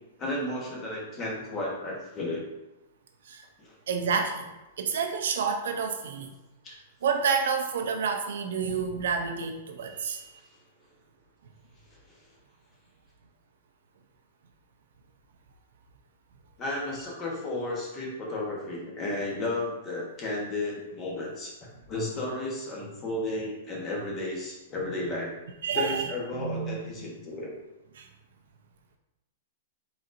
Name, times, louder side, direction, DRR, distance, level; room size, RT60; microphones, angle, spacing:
voice 1, 0.2-2.4 3.6-3.7 16.6-25.3 25.7-27.5, left 2 dB, 20° left, -3 dB, 1.1 m, -33 dB
voice 2, 3.9-4.5 4.8-6.3 7.0-10.4 25.6-27.1 28.0-28.1, right 5 dB, 75° right, 5 dB, 0.6 m, -29 dB
4.3 x 4.0 x 2.6 m, 1.0 s
hypercardioid pair, 160°, 0 cm